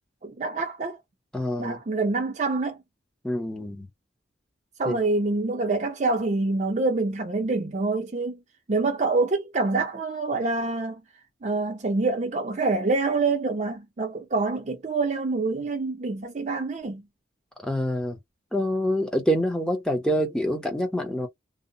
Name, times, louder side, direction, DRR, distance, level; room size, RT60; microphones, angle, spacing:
voice 1, 0.2-1.0 1.6-2.8 4.8-8.4 8.7-11.0 11.4-17.0, right 3 dB, 40° right, 0.5 m, -26 dB
voice 2, 1.3-1.8 3.2-3.9 4.9-5.0 17.6-18.2 18.5-21.3, equal, 5° left, 0.6 m, -26 dB
2.7 x 2.0 x 2.5 m
head